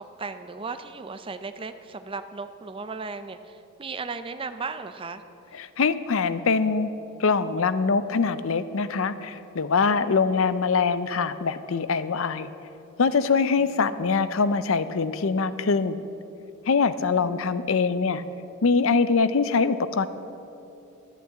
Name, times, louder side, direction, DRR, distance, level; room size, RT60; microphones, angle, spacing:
voice 1, 0.0-5.2 10.1-10.4 13.6-14.0 17.2-17.6, right 4 dB, 25° right, 9 dB, 0.5 m, -36 dB
voice 2, 5.5-6.9 7.2-12.5 13.0-16.0 16.7-18.2 18.6-20.1, left 4 dB, 65° left, 13 dB, 0.5 m, -23 dB
11.5 x 9.2 x 8.0 m, 2.9 s
head